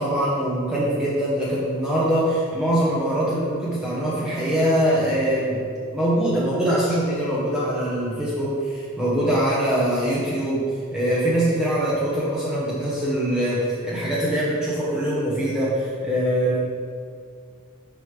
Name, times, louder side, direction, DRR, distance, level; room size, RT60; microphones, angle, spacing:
voice 1, 0.0-5.6 5.9-16.6, right 1 dB, 5° right, -8 dB, 0.9 m, -23 dB
7.7 x 5.2 x 3.3 m, 2.2 s
head